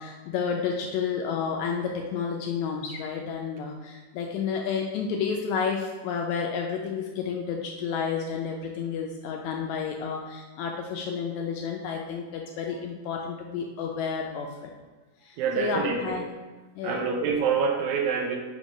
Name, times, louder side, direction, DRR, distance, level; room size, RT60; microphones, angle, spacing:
voice 1, 0.0-14.7 15.2-16.3 16.7-17.0, left 6 dB, 80° left, 1 dB, 1.7 m, -31 dB
voice 2, 15.4-16.2 16.8-18.4, right 6 dB, 80° right, 2 dB, 1.9 m, -26 dB
5.3 x 3.6 x 5.0 m, 1.2 s
omnidirectional pair, 3.6 m